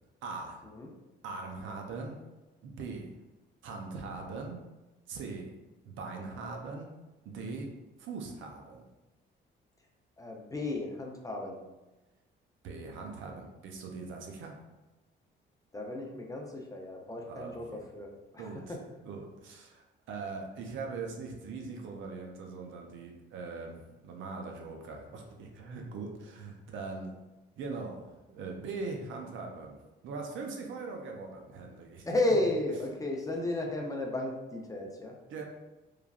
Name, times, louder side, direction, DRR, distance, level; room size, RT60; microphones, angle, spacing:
voice 1, 0.2-0.6 1.2-2.2 2.6-3.1 3.6-4.6 5.1-5.5 5.8-6.9 7.2-7.7 8.0-8.8 12.6-14.5 17.2-17.9 18.4-18.8 19.0-27.1 27.6-32.1 35.3-35.4, right 4 dB, 80° right, 2 dB, 0.5 m, -41 dB
voice 2, 10.2-11.6 15.7-18.1 18.3-18.5 32.1-35.1, left 2 dB, 15° left, 0 dB, 0.5 m, -33 dB
3.1 x 2.3 x 2.3 m, 1.0 s
cardioid pair, 90°, 20 cm